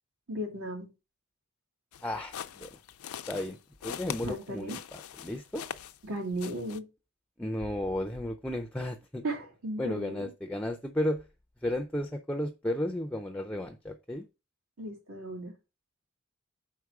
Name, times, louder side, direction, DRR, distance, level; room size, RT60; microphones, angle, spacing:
voice 1, 0.3-0.9 4.2-4.8 6.0-6.9 9.2-10.3 14.8-15.5, right 1 dB, 85° right, 2.6 m, -35 dB
sound 1, 1.9-6.1 6.4-6.8, left 9 dB, 90° left, 0.5 m, -42 dB
voice 2, 2.0-2.7 3.3-3.6 3.8-5.6 7.4-9.2 9.8-11.2 11.6-14.3, left 1 dB, 5° left, 0.4 m, -33 dB
5.8 x 4.7 x 4.8 m
head